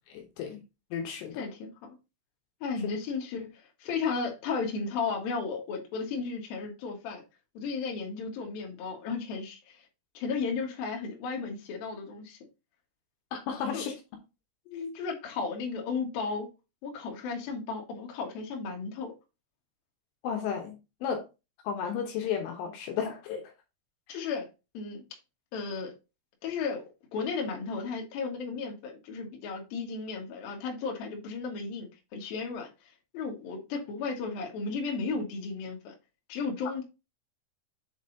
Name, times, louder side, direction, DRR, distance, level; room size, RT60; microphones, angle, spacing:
voice 1, 0.1-0.6 0.9-1.5 2.8-2.9 13.3-14.0 14.7-14.9 20.2-21.3 21.6-23.5 24.1-24.2, left 7 dB, 75° left, 3.2 m, -34 dB
voice 2, 1.4-2.0 2.6-3.5 3.8-7.2 7.5-9.9 10.1-12.4 13.7-13.9 14.9-16.5 16.8-19.1 24.1-24.5 24.7-25.0 25.5-25.9 26.4-26.8 27.1-35.9 36.3-36.8, left 4 dB, 60° left, 2.7 m, -34 dB
7.4 x 4.0 x 3.9 m
omnidirectional pair, 5.9 m